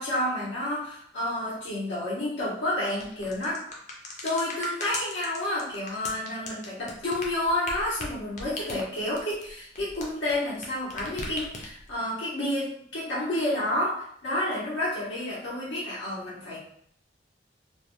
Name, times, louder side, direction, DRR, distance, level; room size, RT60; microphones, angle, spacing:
voice 1, 0.0-3.6 4.2-16.6, left 1 dB, 80° left, -9 dB, 0.8 m, -30 dB
sound 1, 2.9-10.7 10.9-11.9, left 2 dB, 40° left, 0.5 m, -38 dB
2.5 x 2.1 x 3.0 m, 0.65 s
head